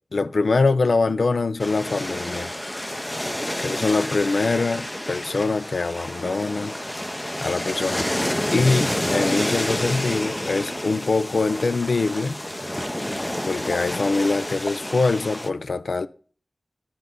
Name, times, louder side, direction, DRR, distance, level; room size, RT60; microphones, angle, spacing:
voice 1, 0.1-2.5 3.6-6.8 7.4-12.4 13.5-16.1, left 3 dB, 80° left, 0.4 m, -23 dB
sound 1, 1.6-15.5, left 1 dB, 15° left, 0.6 m, -29 dB
9.9 x 7.7 x 3.7 m
wide cardioid pair, 55°, 0 cm